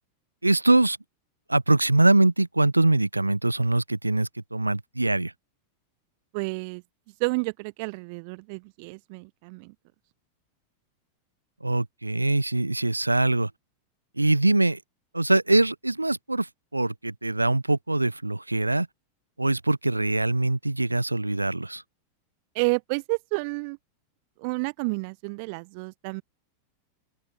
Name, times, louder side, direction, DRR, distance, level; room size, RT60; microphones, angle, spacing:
voice 1, 0.4-1.0 1.5-5.3 11.6-13.5 14.2-14.8 15.1-18.9 19.4-21.8, right 2 dB, 85° right, 0.5 m, -23 dB
voice 2, 6.3-6.8 7.2-9.7 22.5-23.8 24.4-26.2, right 32 dB, 45° right, 0.9 m, -30 dB
open air
figure-of-eight pair, 90°, 0 cm